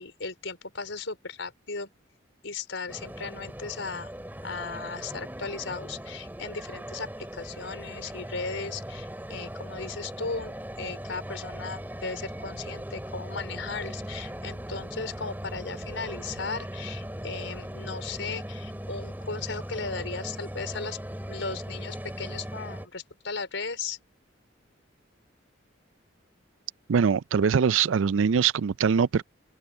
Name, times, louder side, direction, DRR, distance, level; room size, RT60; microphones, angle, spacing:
voice 1, 0.0-1.9 2.4-4.1 4.4-21.0 21.3-24.0, left 4 dB, 80° left, 4.7 m, -36 dB
sound 1, 2.9-22.9, equal, 10° right, 3.5 m, -39 dB
voice 2, 26.9-29.2, right 6 dB, 90° right, 0.4 m, -22 dB
open air
head